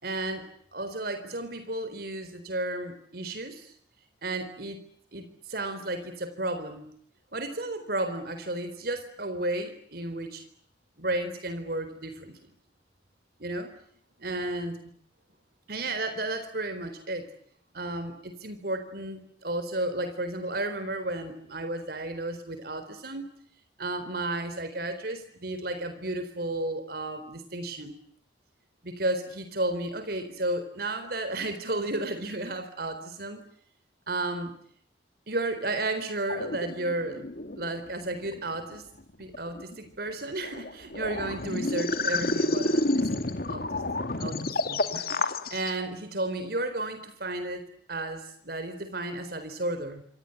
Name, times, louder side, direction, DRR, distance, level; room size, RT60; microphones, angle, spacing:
voice 1, 0.0-3.7 4.2-4.8 5.1-6.9 7.3-10.4 11.0-12.4 13.4-13.7 14.2-14.8 15.7-17.3 17.7-23.3 23.8-28.0 28.8-33.4 34.1-34.5 35.3-37.3 37.6-38.8 39.2-43.2 43.5-43.8 44.2-47.6 47.9-50.0, right 2 dB, 60° right, 9 dB, 4.1 m, -33 dB
sound 1, 36.3-37.7 38.0-38.7 39.2-39.7 40.4-45.7, left 2 dB, 55° left, 2.5 m, -30 dB
27.0 x 27.0 x 8.0 m, 0.64 s
head